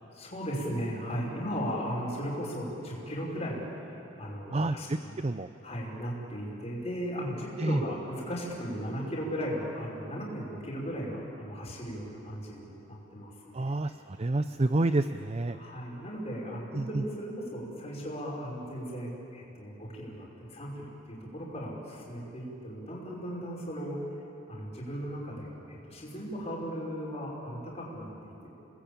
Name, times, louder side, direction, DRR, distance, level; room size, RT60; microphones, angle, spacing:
voice 1, 0.2-5.1 5.6-13.7 15.5-24.0 24.5-28.5, equal, 35° left, -4 dB, 5.4 m, -37 dB
voice 2, 4.5-5.5 7.6-7.8 13.5-15.6 16.7-17.0, right 2 dB, 30° right, 10 dB, 0.5 m, -29 dB
29.0 x 19.5 x 8.7 m, 2.9 s
head